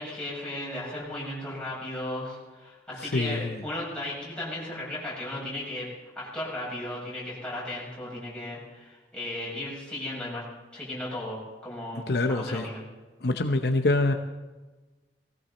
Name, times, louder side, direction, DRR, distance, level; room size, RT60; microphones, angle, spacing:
voice 1, 0.0-5.9 6.1-10.4 10.7-12.8, left 1 dB, 5° left, -7 dB, 6.7 m, -35 dB
voice 2, 3.0-3.6 12.1-12.7 13.2-14.1, left 2 dB, 65° left, 6 dB, 0.8 m, -25 dB
19.0 x 16.0 x 4.2 m, 1.2 s
head